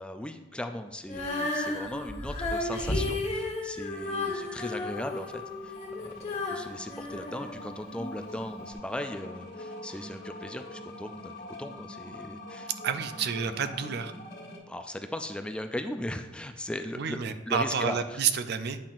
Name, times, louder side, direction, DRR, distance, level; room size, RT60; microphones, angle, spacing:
voice 1, 0.0-12.7 14.7-17.2 17.5-18.2, left 1 dB, 5° left, 7 dB, 0.3 m, -38 dB
Female singing, 1.0-8.1 8.7-8.8, left 2 dB, 35° left, 1.2 m, -33 dB
sound 1, 3.9-14.6, left 2 dB, 60° left, 1.5 m, -44 dB
voice 2, 12.8-14.1 17.0-18.8, right 6 dB, 60° right, 10 dB, 0.4 m, -29 dB
8.8 x 5.7 x 2.5 m, 1.2 s
head